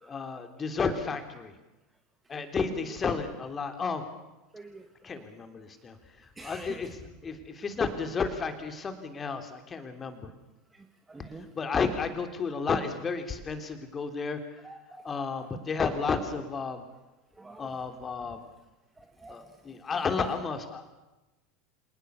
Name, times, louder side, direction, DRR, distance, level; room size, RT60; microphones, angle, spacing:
voice 1, 0.0-1.6 2.3-4.0 5.0-10.3 11.5-14.6 15.0-16.8 17.6-18.5 19.3-20.9, left 5 dB, 25° left, 7 dB, 3.5 m, -32 dB
voice 2, 4.5-4.9 6.4-6.8 11.1-11.5 14.6-15.0 17.4-17.7 19.0-19.4, right 3 dB, 15° right, 5 dB, 2.1 m, -47 dB
27.0 x 19.5 x 7.1 m, 1.0 s
figure-of-eight pair, 80°, 0 cm